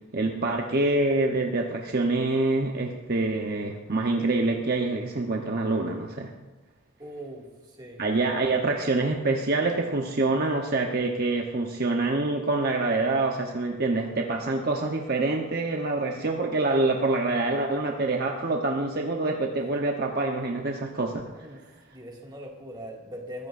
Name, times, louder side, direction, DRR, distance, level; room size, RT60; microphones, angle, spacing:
voice 1, 0.1-6.3 8.0-21.2, right 2 dB, 50° right, 2 dB, 1.0 m, -26 dB
voice 2, 7.0-8.0 21.3-21.6 21.9-23.5, equal, 20° right, -1 dB, 2.2 m, -41 dB
21.0 x 15.0 x 2.6 m, 1.1 s
head